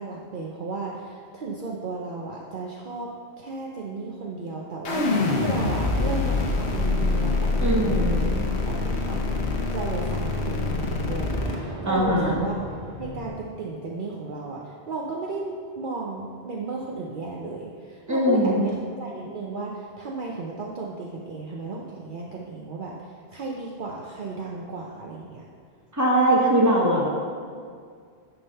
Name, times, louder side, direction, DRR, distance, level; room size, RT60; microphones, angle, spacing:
voice 1, 0.0-3.1 3.4-8.1 8.4-9.2 9.7-12.5 13.0-25.5, right 3 dB, 55° right, -2 dB, 0.8 m, -34 dB
sound 1, 4.8-11.6, left 3 dB, 80° left, 1.2 m, -25 dB
voice 2, 7.6-8.4 11.8-12.4 18.1-18.6 25.9-27.1, right 1 dB, 15° right, -3 dB, 1.1 m, -21 dB
sound 2, 8.2-13.3, left 1 dB, 75° right, 2.0 m, -38 dB
9.5 x 3.7 x 5.5 m, 2.1 s
omnidirectional pair, 1.1 m